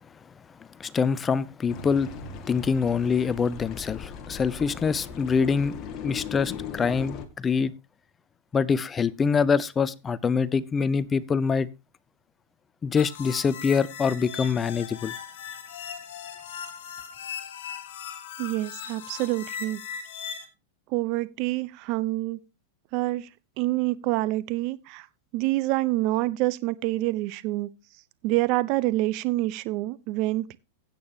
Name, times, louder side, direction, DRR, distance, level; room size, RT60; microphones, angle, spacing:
voice 1, 0.8-2.1 2.5-5.8 6.0-7.7 8.5-11.7 12.8-15.1, left 5 dB, 20° left, 0.5 m, -25 dB
sound 1, 1.7-7.3, left 7 dB, 35° left, 1.8 m, -38 dB
sound 2, 13.0-20.4, left 7 dB, 65° left, 2.6 m, -38 dB
voice 2, 18.4-19.8 20.9-22.4 22.9-23.3 23.6-25.1 25.3-27.7 28.2-30.6, right 18 dB, 50° right, 0.7 m, -27 dB
16.0 x 8.5 x 2.8 m
hypercardioid pair, 130°, 0 cm